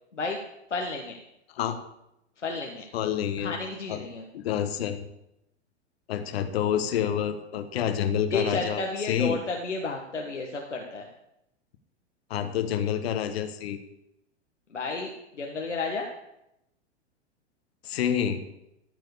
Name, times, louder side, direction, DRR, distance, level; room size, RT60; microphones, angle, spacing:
voice 1, 0.7-1.2 2.4-2.8 3.4-4.2 8.3-11.1 14.7-15.1 15.4-16.1, left 3 dB, 85° left, 1 dB, 1.4 m, -31 dB
voice 2, 2.9-3.5 3.9-4.1 4.3-5.1 6.1-9.4 12.3-13.8 17.8-18.4, left 9 dB, 60° left, 8 dB, 1.3 m, -28 dB
13.5 x 4.8 x 8.2 m, 0.84 s
figure-of-eight pair, 100°, 35 cm